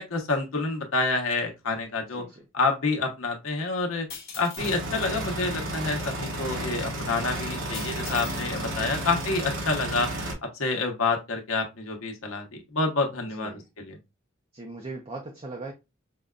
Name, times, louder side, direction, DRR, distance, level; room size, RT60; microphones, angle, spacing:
voice 1, 0.0-2.2 2.5-4.1 4.4-10.1 10.5-14.0, left 3 dB, 85° left, 0.9 m, -28 dB
voice 2, 2.1-2.4 8.8-8.9 13.3-13.6 14.5-15.7, right 2 dB, 30° right, 0.5 m, -39 dB
sound 1, 4.1-5.3 7.7-8.5 8.8-9.3, left 6 dB, 50° left, 1.2 m, -42 dB
sound 2, 4.6-10.3, right 1 dB, 65° right, 1.1 m, -32 dB
5.2 x 2.2 x 2.3 m
head